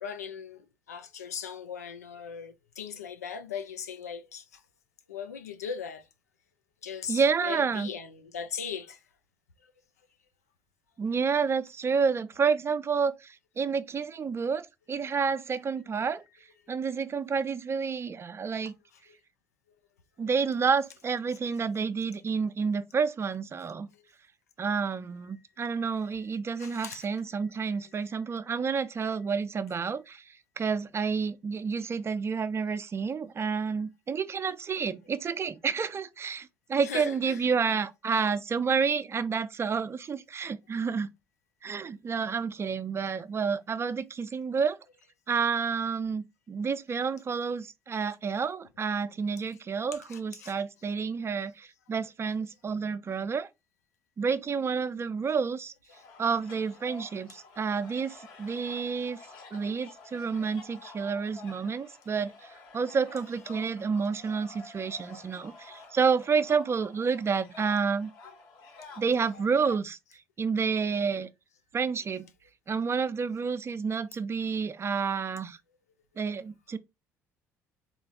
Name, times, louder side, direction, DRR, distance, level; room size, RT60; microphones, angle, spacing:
voice 1, 0.0-0.6 0.9-4.4 5.1-6.0 6.8-9.0 26.6-27.1 36.8-37.4 50.1-50.6, left 7 dB, 85° left, 0.4 m, -38 dB
voice 2, 7.1-7.9 11.0-16.2 16.7-18.7 20.2-23.9 24.6-41.1 41.6-44.8 45.3-53.5 54.2-55.7 56.2-59.2 59.5-68.1 69.0-70.0 70.4-71.3 71.7-72.3 72.7-75.6 76.2-76.8, right 5 dB, 30° right, 0.4 m, -29 dB
sound 1, 55.9-69.7, left 3 dB, 60° left, 1.3 m, -50 dB
3.7 x 2.4 x 2.7 m
hypercardioid pair, 50°, 8 cm